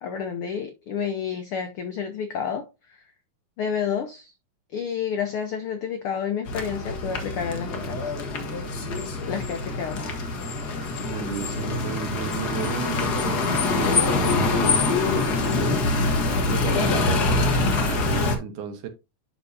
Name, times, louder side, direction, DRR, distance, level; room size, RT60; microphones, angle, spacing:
voice 1, 0.0-3.0 3.6-4.3 4.7-8.2 9.3-10.1, left 7 dB, 80° left, 1.2 m, -30 dB
sound 1, 6.5-18.4, left 3 dB, 60° left, 1.0 m, -24 dB
voice 2, 11.0-16.0 16.5-18.9, right 7 dB, 75° right, 2.6 m, -34 dB
11.0 x 4.5 x 2.7 m
omnidirectional pair, 3.6 m